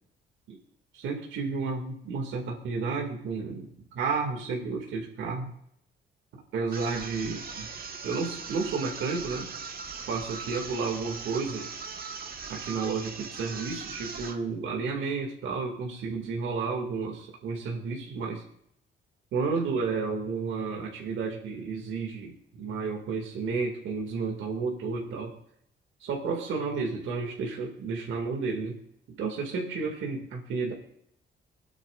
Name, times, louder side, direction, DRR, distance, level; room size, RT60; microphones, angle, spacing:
voice 1, 0.9-5.5 6.5-7.7 8.0-9.5 10.1-11.7 12.5-18.4 19.3-25.3 26.0-28.8 29.2-30.7, right 4 dB, 75° right, 0 dB, 2.2 m, -32 dB
sound 1, 6.7-14.5, right 5 dB, 50° right, 1.4 m, -40 dB
24.5 x 9.0 x 2.5 m, 0.73 s
cardioid pair, 90°, 20 cm